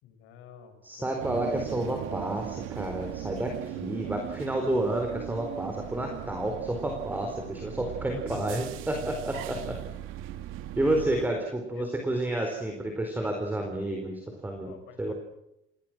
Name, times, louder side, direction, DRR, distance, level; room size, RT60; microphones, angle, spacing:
voice 1, 0.0-1.5 8.1-8.6 9.1-9.2 10.0-10.1 11.7-11.9 14.6-15.1, left 10 dB, 80° left, 8 dB, 6.3 m, -46 dB
voice 2, 0.8-9.8 10.8-15.1, right 1 dB, 10° right, 3 dB, 4.2 m, -30 dB
sound 1, 1.2-11.3, right 12 dB, 85° right, 2.4 m, -39 dB
29.0 x 22.0 x 6.3 m, 0.85 s
cardioid pair, 165°, 20 cm